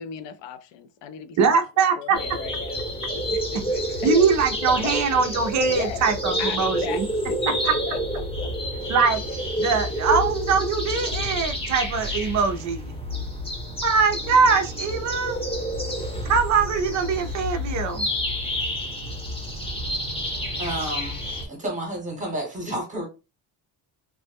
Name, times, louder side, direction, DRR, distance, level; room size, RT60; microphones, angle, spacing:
voice 1, 0.0-4.3 4.8-5.2 5.7-6.1 6.4-8.3, left 8 dB, 65° left, 0.5 m, -36 dB
voice 2, 1.4-2.2 4.0-7.1 7.6-7.7 8.9-9.2 9.6-12.9 13.8-15.4 16.3-18.1, right 5 dB, 40° right, 0.4 m, -22 dB
sound 1, 2.1-21.5, equal, 10° left, 0.8 m, -29 dB
voice 3, 20.6-21.2 21.5-23.1, right 1 dB, 15° right, 0.9 m, -30 dB
3.1 x 2.0 x 3.4 m
cardioid pair, 180°, 48 cm